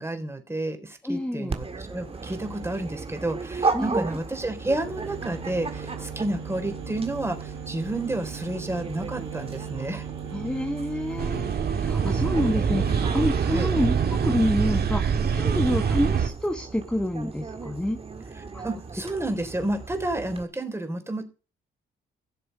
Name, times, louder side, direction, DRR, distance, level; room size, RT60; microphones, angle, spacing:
voice 1, 0.0-10.1 13.5-13.7 18.4-21.2, right 1 dB, 15° right, 6 dB, 3.7 m, -30 dB
voice 2, 1.0-1.6 3.7-4.1 10.3-13.9 14.2-18.0 18.5-18.6, left 1 dB, 5° left, 6 dB, 1.2 m, -28 dB
Dog, 1.5-20.4, right 4 dB, 30° right, 1.8 m, -36 dB
sound 1, 2.1-3.3 4.3-14.1, right 9 dB, 90° right, 4.1 m, -39 dB
sound 2, 11.2-16.3, right 6 dB, 55° right, 1.8 m, -25 dB
16.5 x 6.8 x 5.5 m, 0.34 s
cardioid pair, 90°, 20 cm